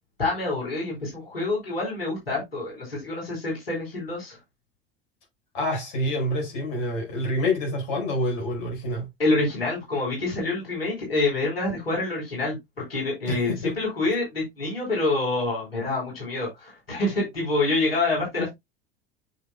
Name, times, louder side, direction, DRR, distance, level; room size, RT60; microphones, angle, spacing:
voice 1, 0.2-4.4 9.2-12.6 12.9-18.5, left 2 dB, 80° left, 4.3 m, -27 dB
voice 2, 5.5-9.1 13.3-13.8 18.4-18.5, left 1 dB, 55° left, 5.1 m, -27 dB
8.7 x 6.4 x 2.2 m
figure-of-eight pair, 75°, 29 cm